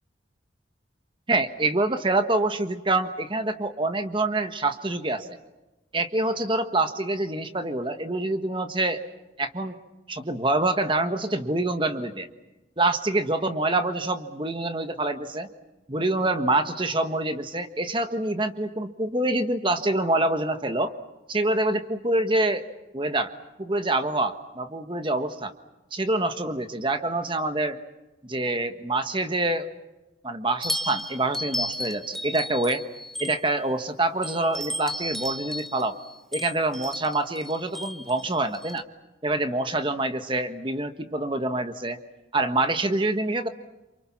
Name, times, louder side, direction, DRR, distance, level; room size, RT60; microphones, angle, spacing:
voice 1, 1.3-5.3 5.9-9.0 9.4-9.8 10.1-12.3 12.8-15.5 15.9-20.9 21.3-22.6 22.9-23.3 23.6-25.5 25.9-27.8 28.2-29.7 30.2-32.8 33.2-36.0 36.3-38.8 39.2-42.0 42.3-43.5, right 2 dB, 25° right, 8 dB, 1.4 m, -26 dB
sound 1, 30.6-33.7 34.2-38.8, left 1 dB, ahead, 1.1 m, -34 dB
28.5 x 27.0 x 6.0 m, 1.1 s
head